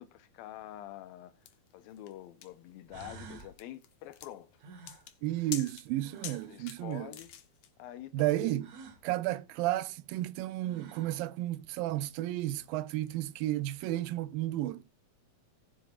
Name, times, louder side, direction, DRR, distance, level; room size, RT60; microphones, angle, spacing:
voice 1, 0.0-1.3 1.7-4.5 6.5-7.3 7.8-8.6, left 13 dB, 85° left, 2.6 m, -46 dB
sound 1, 1.4-1.5 2.5-2.6 2.9-3.5 4.6-6.6 8.6-9.0 10.3-10.4 10.6-11.2, right 4 dB, 60° right, 3.0 m, -51 dB
sound 2, 1.5-7.7, left 10 dB, 65° left, 1.9 m, -46 dB
voice 2, 5.2-7.1 8.1-8.7 9.0-14.8, right 15 dB, 85° right, 2.4 m, -32 dB
18.5 x 7.6 x 2.4 m
omnidirectional pair, 4.1 m